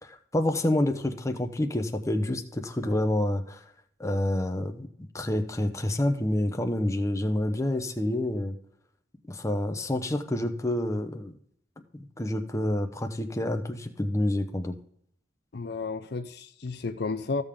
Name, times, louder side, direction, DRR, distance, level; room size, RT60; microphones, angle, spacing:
voice 1, 0.0-3.7 4.0-4.9 5.1-8.5 9.3-11.4 11.9-14.8, left 1 dB, 15° left, 0.9 m, -28 dB
voice 2, 15.5-17.4, left 4 dB, 60° left, 0.6 m, -32 dB
14.5 x 6.8 x 3.6 m
head